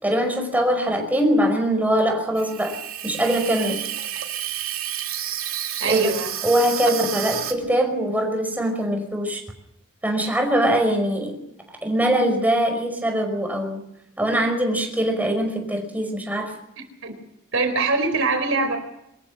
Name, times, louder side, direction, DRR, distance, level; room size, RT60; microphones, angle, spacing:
voice 1, 0.0-2.8 3.0-3.8 5.8-6.1 6.4-9.4 10.0-11.4 11.7-13.8 14.2-16.5, equal, 10° right, 3 dB, 5.4 m, -22 dB
Water tap faucet / Sink (filling or washing), 2.4-7.5, right 11 dB, 90° right, 2.7 m, -30 dB
voice 2, 5.8-6.3 16.8-17.2 17.5-18.8, right 3 dB, 65° right, 6 dB, 4.4 m, -23 dB
24.0 x 14.0 x 7.6 m, 0.78 s
head